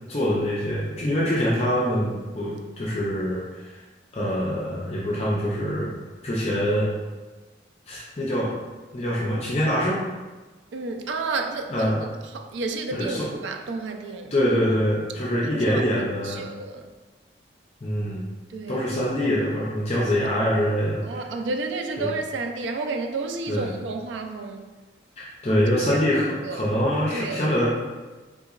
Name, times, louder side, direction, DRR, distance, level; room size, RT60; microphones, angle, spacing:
voice 1, 0.1-3.8 4.1-5.9 6.2-6.9 7.9-8.5 8.9-10.0 11.7-12.0 12.9-13.3 14.3-16.4 17.8-18.3 18.7-21.0 22.0-22.1 23.5-23.7 25.2-27.7, equal, 35° left, 0.5 m, -24 dB
voice 2, 10.7-14.3 15.2-15.8 16.2-16.9 18.5-18.9 21.0-24.7 25.5-26.7 27.1-27.5, right 3 dB, 85° right, 0.3 m, -31 dB
3.7 x 2.9 x 2.4 m
head